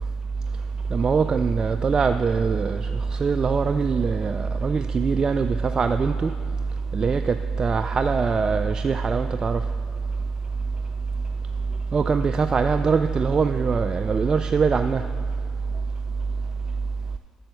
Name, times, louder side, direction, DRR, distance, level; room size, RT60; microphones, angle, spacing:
voice 1, 0.9-2.8 3.2-6.3 6.9-9.6 11.9-15.0, right 5 dB, 35° right, 8 dB, 0.3 m, -22 dB
7.7 x 7.0 x 6.5 m, 2.1 s
supercardioid pair, 65°, 2 cm